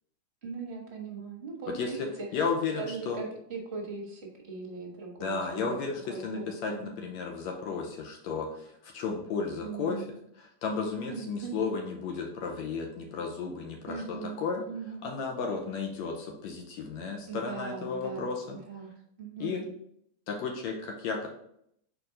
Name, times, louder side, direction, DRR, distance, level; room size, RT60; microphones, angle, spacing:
voice 1, 0.4-2.3 2.8-5.8 6.1-7.0 9.6-10.1 11.1-11.5 13.9-14.4 14.7-15.1 17.3-18.3 18.7-18.9 19.2-19.6, right 5 dB, 40° right, -1 dB, 0.8 m, -39 dB
voice 2, 2.3-3.2 5.2-10.1 10.6-14.7 15.0-18.6 19.4-19.6 20.3-21.3, left 5 dB, 75° left, 1 dB, 2.0 m, -33 dB
5.2 x 4.9 x 3.8 m, 0.72 s
omnidirectional pair, 3.4 m